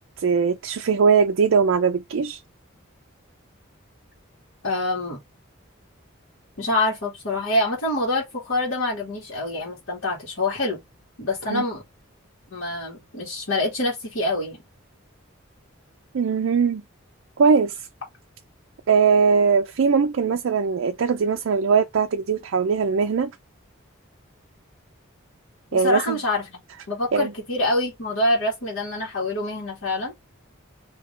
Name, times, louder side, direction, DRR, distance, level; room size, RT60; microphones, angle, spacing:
voice 1, 0.2-2.4 11.5-11.6 16.1-16.8 17.4-17.8 18.9-23.3 25.7-26.2 27.1-27.3, right 5 dB, 70° right, 0.4 m, -20 dB
voice 2, 4.6-5.2 6.6-10.8 11.2-11.8 12.5-14.6 25.7-26.6 26.9-30.1, left 2 dB, 70° left, 1.8 m, -26 dB
3.6 x 2.9 x 3.2 m
head